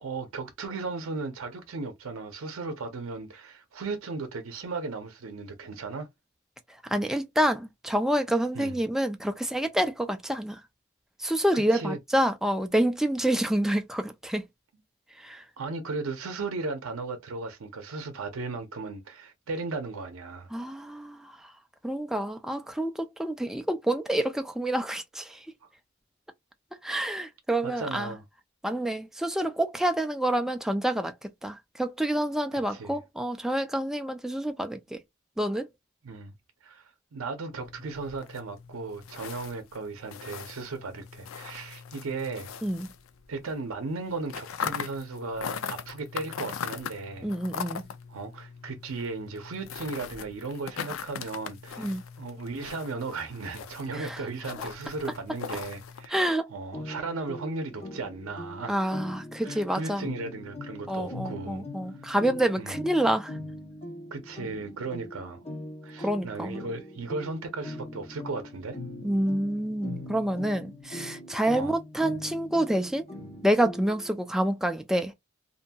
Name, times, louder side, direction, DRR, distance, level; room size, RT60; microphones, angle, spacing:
voice 1, 0.0-6.1 8.5-8.8 11.5-12.0 15.6-20.5 25.6-25.7 27.6-28.2 32.5-33.0 36.0-36.3 36.6-42.5 43.3-47.3 48.1-58.9 59.4-61.7 62.0-62.1 62.6-62.8 64.1-65.4 65.8-68.8 71.5-71.7, right 3 dB, 80° right, 0.6 m, -36 dB
voice 2, 6.9-10.6 11.2-14.4 15.2-15.4 20.5-21.3 21.8-25.4 26.8-28.1 28.6-31.1 31.4-35.0 35.4-35.7 42.6-42.9 47.2-47.8 51.8-52.0 53.9-54.2 56.1-56.5 58.7-60.1 60.9-63.3 66.0-66.6 69.0-73.1 73.4-75.1, right 1 dB, ahead, 0.3 m, -28 dB
sound 1, 37.5-43.5 43.8-56.1, left 7 dB, 75° left, 0.4 m, -40 dB
sound 2, 56.7-74.2, left 1 dB, 30° left, 0.7 m, -41 dB
2.7 x 2.6 x 2.2 m
head